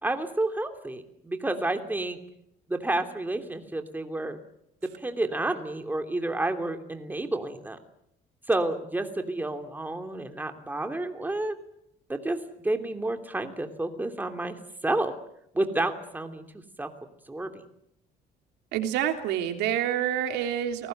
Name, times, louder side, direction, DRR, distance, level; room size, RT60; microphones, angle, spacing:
voice 1, 0.0-2.2 2.7-4.4 5.0-7.8 8.5-11.6 12.1-12.4 12.6-14.6 14.8-15.1 15.5-16.4 16.8-16.9 17.3-17.6, right 2 dB, 10° right, 6 dB, 2.9 m, -30 dB
voice 2, 18.7-20.9, right 10 dB, 90° right, 5 dB, 3.3 m, -27 dB
29.5 x 19.5 x 8.0 m, 0.78 s
cardioid pair, 110°, 17 cm